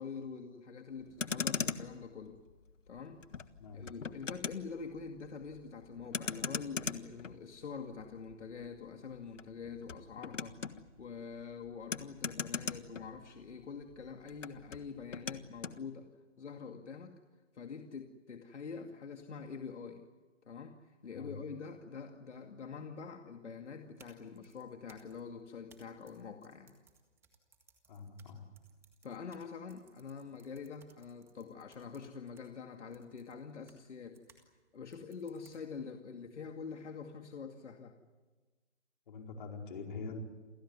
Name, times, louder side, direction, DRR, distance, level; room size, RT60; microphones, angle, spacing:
voice 1, 0.0-2.4 2.9-3.2 3.7-10.6 11.0-16.1 16.4-17.1 17.5-20.0 20.5-26.7 29.0-34.4 34.7-38.0, left 5 dB, 70° left, 4 dB, 2.4 m, -45 dB
Motor vehicle (road), 1.0-13.6 13.9-15.8, left 5 dB, 90° left, 1.6 m, -41 dB
sound 1, 23.8-34.5 34.9-35.9, right 5 dB, 5° right, 1.8 m, -66 dB
voice 2, 27.9-28.4 39.1-40.2, left 4 dB, 40° left, 2 dB, 4.6 m, -44 dB
28.5 x 17.5 x 9.6 m, 1.3 s
hypercardioid pair, 160°, 36 cm